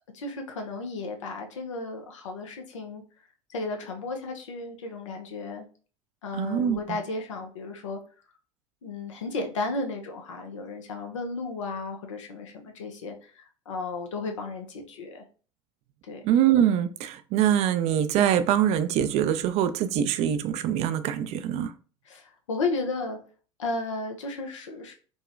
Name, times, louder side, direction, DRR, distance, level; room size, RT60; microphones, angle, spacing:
voice 1, 0.1-3.0 3.5-5.6 6.2-8.0 8.8-15.2 16.0-16.2 22.0-23.2 23.6-24.9, left 3 dB, 80° left, 0.6 m, -34 dB
voice 2, 6.3-6.8 16.2-21.7, right 10 dB, 45° right, 0.4 m, -24 dB
3.7 x 2.2 x 2.4 m
hypercardioid pair, 80°, 16 cm